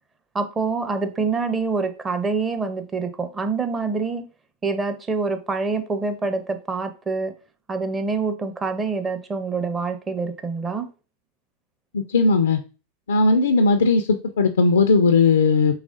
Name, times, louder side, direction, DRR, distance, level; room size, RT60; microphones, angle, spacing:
voice 1, 0.3-4.2 4.6-7.3 7.7-10.9, right 4 dB, 15° right, 0.6 m, -26 dB
voice 2, 11.9-12.6 13.1-14.0 14.4-15.7, left 4 dB, 65° left, 0.3 m, -17 dB
4.8 x 3.4 x 2.5 m
figure-of-eight pair, 90°, 0 cm